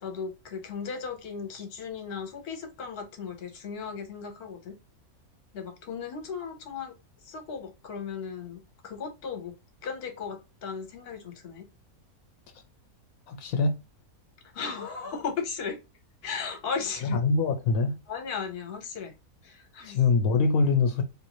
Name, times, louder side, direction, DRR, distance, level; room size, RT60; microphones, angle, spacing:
voice 1, 0.0-4.7 5.5-6.9 7.2-9.5 9.8-11.7 14.5-15.8 16.2-17.2 18.1-19.2 19.4-20.0, left 6 dB, 50° left, 1.0 m, -36 dB
voice 2, 13.3-13.8 17.0-18.0 19.8-21.0, left 4 dB, 75° left, 1.0 m, -24 dB
3.5 x 2.6 x 2.9 m
omnidirectional pair, 1.5 m